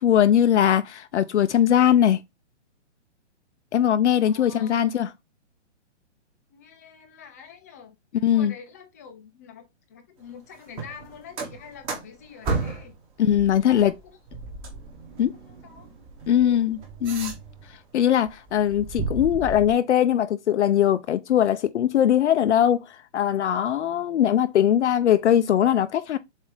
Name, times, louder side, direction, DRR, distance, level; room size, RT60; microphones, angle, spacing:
voice 1, 0.0-2.2 3.7-5.1 8.2-8.5 13.2-13.9 15.2-15.3 16.3-17.3 17.9-26.2, left 10 dB, 70° left, 0.6 m, -20 dB
voice 2, 4.2-5.0 6.5-8.0 8.3-13.0 13.7-14.2 15.3-15.9 16.3-16.7, left 7 dB, 15° left, 0.5 m, -45 dB
sound 1, 10.7-13.0 13.3-17.8 18.2-19.7, right 3 dB, 15° right, 1.0 m, -34 dB
7.4 x 2.7 x 4.8 m
hypercardioid pair, 165°, 36 cm